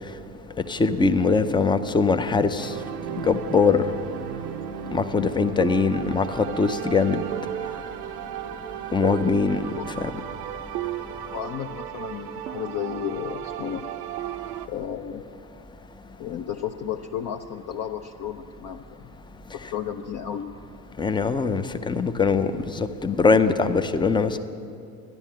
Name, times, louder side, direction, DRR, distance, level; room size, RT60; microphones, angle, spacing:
voice 1, 0.7-2.7 3.2-3.8 4.9-7.2 8.9-9.7 10.0-10.1 21.0-24.4, left 4 dB, 10° left, 10 dB, 0.5 m, -22 dB
sound 1, 2.6-14.7, right 11 dB, 75° right, 0.8 m, -34 dB
voice 2, 11.3-13.8 14.7-15.2 16.2-19.1 19.5-20.5, left 9 dB, 45° left, 2 dB, 0.8 m, -33 dB
12.5 x 10.5 x 7.4 m, 2.5 s
hypercardioid pair, 75°, 48 cm